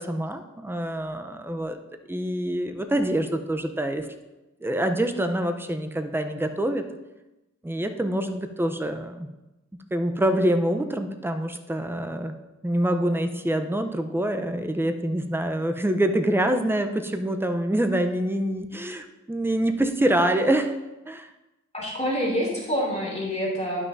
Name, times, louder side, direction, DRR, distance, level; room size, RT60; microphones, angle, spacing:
voice 1, 0.0-1.8 2.1-4.1 4.6-6.8 7.6-9.3 9.9-12.3 12.6-20.7 21.1-21.3, right 1 dB, 10° right, 6 dB, 0.7 m, -25 dB
voice 2, 21.7-23.8, equal, 20° left, -4 dB, 2.8 m, -27 dB
11.5 x 5.9 x 2.7 m, 1.0 s
wide cardioid pair, 45°, 30 cm